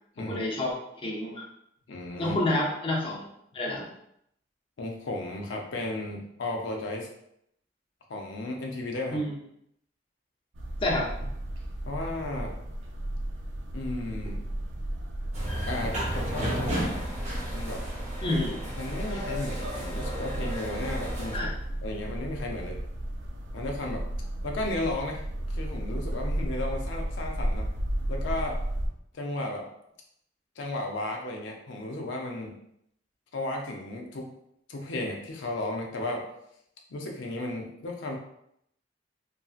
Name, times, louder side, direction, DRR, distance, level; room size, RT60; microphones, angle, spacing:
voice 1, 0.2-1.4 2.2-3.3 3.5-3.9 9.1-9.3 10.8-11.1 18.2-18.6 21.3-21.5, left 1 dB, 30° left, -2 dB, 0.5 m, -29 dB
voice 2, 1.9-2.4 4.8-7.1 8.1-9.2 11.9-12.6 13.7-14.4 15.7-17.0 17.5-17.8 18.8-21.5 21.8-22.8 23.5-24.0 24.4-25.2 25.5-27.7 28.1-28.6 29.1-29.7 30.6-32.6 33.3-34.3 34.7-36.2 36.9-38.2, left 2 dB, 85° left, 1 dB, 0.5 m, -34 dB
sound 1, 10.5-28.9, right 1 dB, 85° right, 0.5 m, -34 dB
sound 2, 15.3-21.4, equal, 40° right, 0.8 m, -34 dB
2.8 x 2.7 x 2.4 m, 0.74 s
head